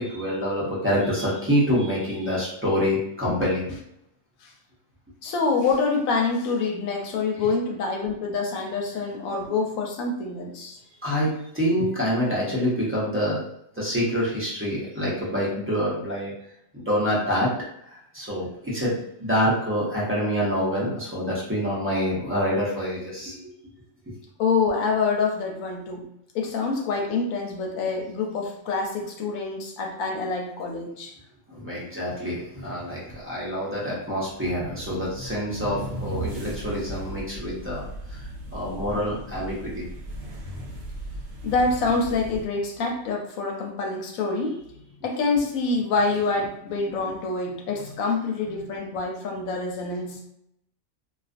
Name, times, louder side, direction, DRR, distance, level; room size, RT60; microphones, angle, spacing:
voice 1, 0.0-3.8 11.0-13.4 13.8-16.3 16.7-17.5 18.1-23.4 24.1-24.2 31.5-37.8 38.5-39.9, equal, 20° right, -7 dB, 0.3 m, -26 dB
voice 2, 5.2-10.8 24.4-26.1 26.3-31.1 41.4-44.6 45.0-50.2, left 4 dB, 85° left, 1 dB, 1.0 m, -26 dB
sound 1, 32.7-32.8 33.1-33.4 34.2-42.5, right 1 dB, 65° right, 0.7 m, -37 dB
2.4 x 2.3 x 2.4 m, 0.76 s
omnidirectional pair, 1.4 m